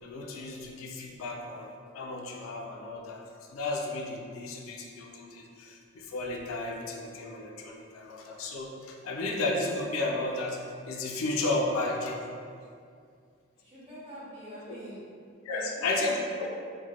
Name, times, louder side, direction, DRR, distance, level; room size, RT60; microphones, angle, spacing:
voice 1, 0.0-1.7 1.9-3.2 3.5-10.6 10.9-12.2 15.5-16.5, left 2 dB, 85° left, 0 dB, 0.3 m, -33 dB
voice 2, 13.6-15.0 15.5-16.4, right 1 dB, 30° right, -11 dB, 0.9 m, -45 dB
2.1 x 2.0 x 2.9 m, 2.2 s
head